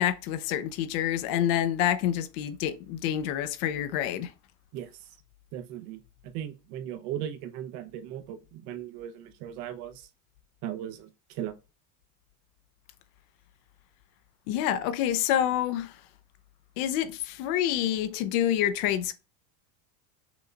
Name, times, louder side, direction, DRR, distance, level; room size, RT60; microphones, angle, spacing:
voice 1, 0.0-4.3 14.5-16.0 16.8-19.1, left 11 dB, 60° left, 0.7 m, -27 dB
voice 2, 5.5-6.0 6.3-10.0 10.6-11.1 11.3-11.5, right 11 dB, 60° right, 0.9 m, -37 dB
6.1 x 2.3 x 3.8 m
cardioid pair, 155°, 49 cm